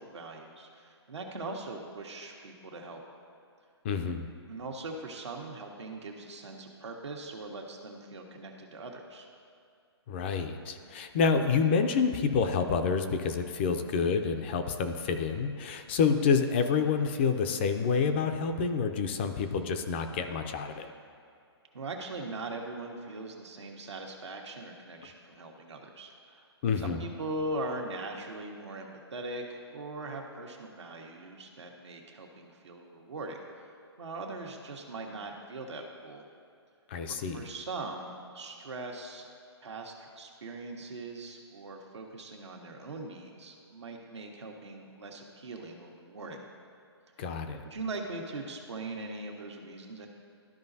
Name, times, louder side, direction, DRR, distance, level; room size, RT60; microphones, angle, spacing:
voice 1, 0.0-3.0 4.5-9.3 21.7-26.5 26.8-33.7 34.0-36.2 37.1-39.3 39.6-46.5 47.2-50.1, right 2 dB, 90° right, 0 dB, 1.4 m, -41 dB
voice 2, 3.8-4.3 10.1-20.9 26.6-27.0 36.9-37.4 47.2-47.6, left 5 dB, 25° left, 7 dB, 0.4 m, -28 dB
13.0 x 5.1 x 2.7 m, 2.4 s
hypercardioid pair, 155°, 14 cm